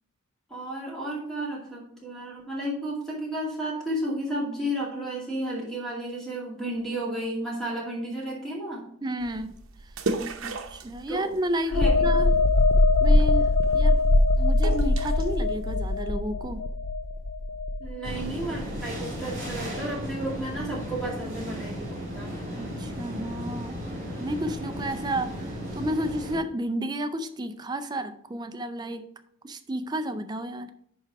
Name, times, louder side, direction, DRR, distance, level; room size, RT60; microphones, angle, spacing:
voice 1, 0.5-8.8 11.1-11.3 11.7-12.1 17.8-22.3, right 1 dB, ahead, -5 dB, 2.3 m, -33 dB
voice 2, 9.0-9.6 10.4-12.3 13.0-14.0 14.4-16.7 22.6-29.1 29.4-30.7, right 1 dB, 20° right, 10 dB, 0.4 m, -32 dB
sound 1, 9.2-16.0, right 3 dB, 80° right, 0.7 m, -37 dB
sound 2, 11.7-19.2 19.5-19.7, left 2 dB, 60° left, 0.5 m, -22 dB
sound 3, 18.0-26.4, equal, 40° right, 3.1 m, -35 dB
10.5 x 3.5 x 4.7 m, 0.67 s
head